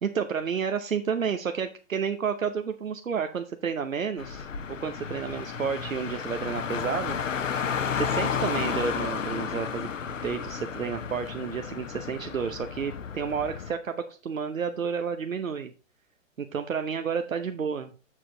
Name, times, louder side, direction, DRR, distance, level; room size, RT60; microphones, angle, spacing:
voice 1, 0.0-7.2 7.9-9.9 10.2-15.7 16.4-17.9, right 6 dB, 80° right, 7 dB, 0.8 m, -31 dB
Car, 4.2-13.7, left 7 dB, 70° left, 0.9 m, -32 dB
7.5 x 6.1 x 3.9 m, 0.34 s
figure-of-eight pair, 115°, 40 cm